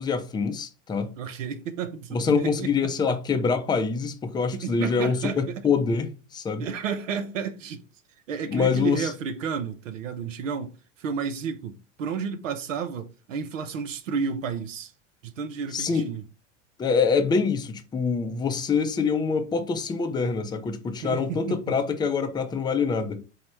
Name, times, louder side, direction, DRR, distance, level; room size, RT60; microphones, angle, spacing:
voice 1, 0.0-1.1 2.1-6.7 8.5-9.1 15.7-16.0 16.8-23.2, left 5 dB, 10° left, 0.4 m, -25 dB
voice 2, 1.2-2.7 3.1-3.2 4.5-5.6 6.6-7.8 8.3-14.9 15.2-16.2 21.0-21.8, right 6 dB, 90° right, 0.6 m, -32 dB
4.6 x 2.1 x 4.3 m
hypercardioid pair, 100°, 37 cm